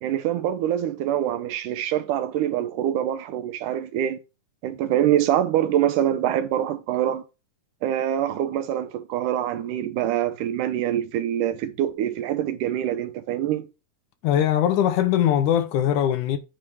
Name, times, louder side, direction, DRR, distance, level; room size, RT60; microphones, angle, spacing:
voice 1, 0.0-4.2 4.6-7.2 7.8-13.7, right 11 dB, 75° right, 2.1 m, -25 dB
voice 2, 14.2-16.4, left 10 dB, 75° left, 2.0 m, -21 dB
8.9 x 3.3 x 4.6 m
omnidirectional pair, 3.8 m